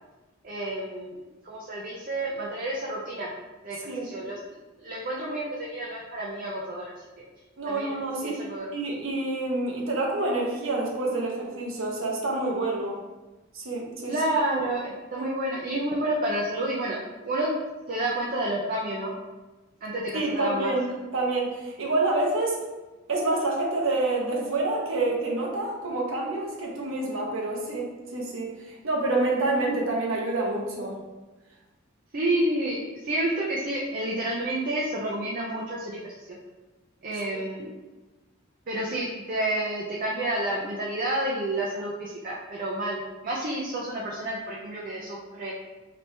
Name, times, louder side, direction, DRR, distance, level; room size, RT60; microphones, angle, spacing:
voice 1, 0.4-1.1 1.4-3.3 3.6-4.4 4.8-6.8 7.2-7.3 7.7-8.7 14.1-17.0 17.2-17.5 17.9-19.1 19.8-20.7 32.1-32.8 33.0-36.1 37.0-37.7 38.7-45.5, right 1 dB, 45° right, -4 dB, 0.6 m, -29 dB
voice 2, 7.6-8.4 8.7-13.0 13.5-14.1 15.2-15.3 20.1-22.6 23.1-31.0 37.3-37.4, right 2 dB, 80° right, -1 dB, 1.0 m, -28 dB
4.2 x 2.9 x 3.3 m, 1.1 s
head